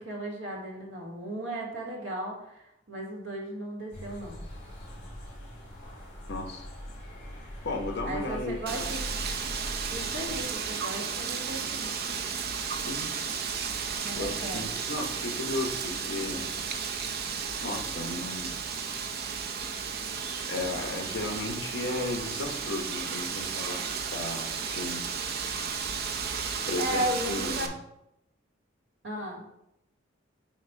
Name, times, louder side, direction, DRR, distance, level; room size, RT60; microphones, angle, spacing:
voice 1, 0.0-4.4 8.1-9.0 9.9-12.2 14.0-14.8 26.8-27.7 29.0-29.4, right 1 dB, 70° right, -1 dB, 1.8 m, -36 dB
sound 1, 3.9-10.5, equal, 35° left, 2.5 m, -41 dB
voice 2, 6.3-6.7 7.6-8.8 12.8-13.1 14.1-16.5 17.6-18.5 20.5-23.8 24.1-25.1 26.7-27.7, left 2 dB, 60° left, 2 dB, 1.1 m, -34 dB
Wind, 8.7-27.7, right 6 dB, 55° right, 0.6 m, -33 dB
7.3 x 2.7 x 5.8 m, 0.81 s
head